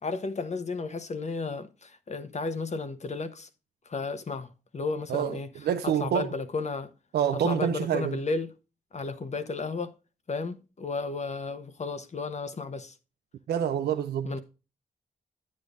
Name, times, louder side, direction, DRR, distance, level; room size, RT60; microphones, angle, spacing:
voice 1, 0.0-3.5 3.9-5.5 5.8-6.9 7.3-8.5 8.9-9.9 10.3-12.9 14.2-14.4, left 3 dB, 45° left, 1.1 m, -33 dB
voice 2, 5.1-6.3 7.1-8.2 13.5-14.3, right 9 dB, 85° right, 0.5 m, -27 dB
9.5 x 8.6 x 2.6 m
cardioid pair, 55°, 16 cm